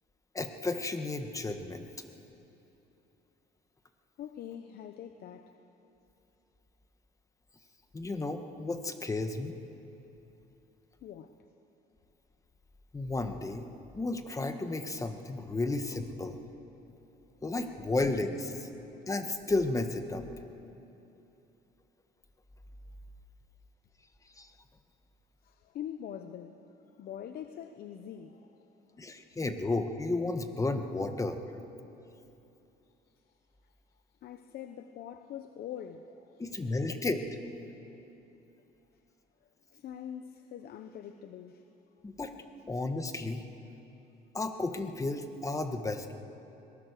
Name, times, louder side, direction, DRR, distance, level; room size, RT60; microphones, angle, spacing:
voice 1, 0.3-1.9 7.9-9.5 12.9-13.6 13.9-16.4 17.4-18.7 19.1-20.3 24.4-24.5 29.0-31.4 36.4-37.2 42.0-42.3 42.7-43.4 44.3-46.2, left 2 dB, 20° left, 7 dB, 1.4 m, -33 dB
voice 2, 4.2-5.6 11.0-11.4 18.8-19.1 25.4-28.7 33.6-33.7 34.2-36.4 39.4-41.7, left 9 dB, 65° left, 8 dB, 0.9 m, -44 dB
22.5 x 19.0 x 6.8 m, 2.9 s
cardioid pair, 110°, 17 cm